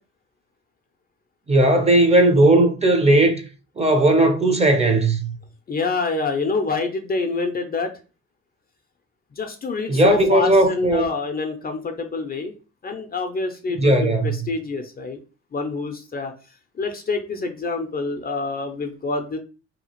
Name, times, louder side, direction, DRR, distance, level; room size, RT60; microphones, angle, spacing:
voice 1, 1.5-3.4 3.8-5.3 9.9-11.1 13.8-14.3, right 1 dB, 20° right, 0.6 m, -17 dB
voice 2, 5.7-7.9 9.4-12.5 12.8-15.2 15.5-16.3 16.8-19.4, left 3 dB, 30° left, 0.4 m, -26 dB
2.8 x 2.4 x 2.9 m
cardioid pair, 90°, 30 cm